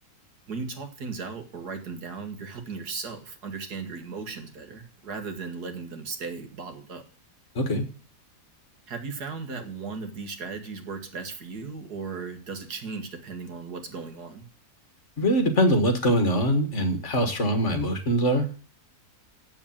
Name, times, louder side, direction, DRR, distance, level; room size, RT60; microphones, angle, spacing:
voice 1, 0.5-7.0 8.9-14.5, right 4 dB, 70° right, 6 dB, 2.2 m, -36 dB
voice 2, 15.2-18.5, equal, 45° left, 7 dB, 1.9 m, -23 dB
7.9 x 7.2 x 7.2 m, 0.40 s
omnidirectional pair, 1.7 m